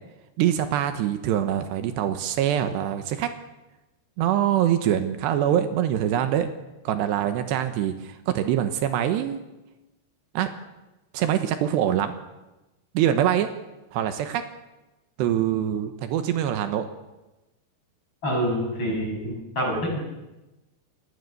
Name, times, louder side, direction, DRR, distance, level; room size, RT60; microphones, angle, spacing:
voice 1, 0.4-3.3 4.2-6.5 6.8-9.4 10.3-10.5 11.1-12.1 12.9-13.5 13.9-14.4 15.2-16.9, right 10 dB, 80° right, 8 dB, 3.3 m, -24 dB
voice 2, 18.2-20.0, equal, 25° left, 0 dB, 7.2 m, -26 dB
28.0 x 19.0 x 6.8 m, 1.0 s
omnidirectional pair, 5.0 m